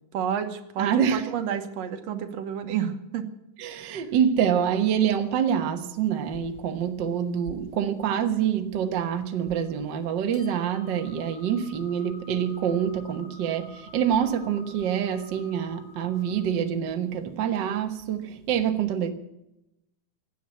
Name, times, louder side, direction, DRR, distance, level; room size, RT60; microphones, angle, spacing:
voice 1, 0.1-3.3 3.7-4.0, right 8 dB, 65° right, 2.0 m, -30 dB
voice 2, 0.8-1.3 3.6-19.1, right 8 dB, 85° right, 0.9 m, -26 dB
sound 1, 9.3-16.5, left 4 dB, 70° left, 4.3 m, -51 dB
16.0 x 9.3 x 9.4 m
omnidirectional pair, 3.9 m